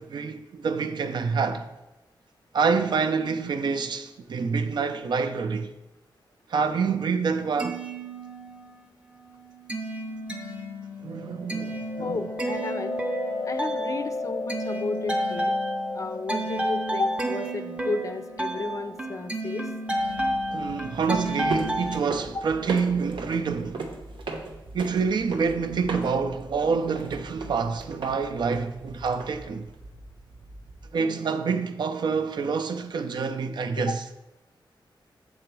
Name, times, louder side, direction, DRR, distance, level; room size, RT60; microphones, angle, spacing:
voice 1, 0.0-1.7 2.5-5.7 6.5-7.8 11.0-12.2 20.5-23.9 24.7-29.7 30.9-34.0, right 5 dB, 65° right, 0.4 m, -27 dB
sound 1, 7.6-8.8 9.1-22.0, right 1 dB, 15° right, 0.6 m, -31 dB
sound 2, 11.3-20.8, left 3 dB, 85° left, 0.7 m, -35 dB
voice 2, 12.0-13.0 13.5-15.5 15.9-19.7 22.3-22.4 33.8-34.0, left 3 dB, 40° left, 0.4 m, -33 dB
sound 3, 20.0-30.9, right 3 dB, 90° right, 0.8 m, -38 dB
6.7 x 3.9 x 4.6 m
wide cardioid pair, 140°, 8 cm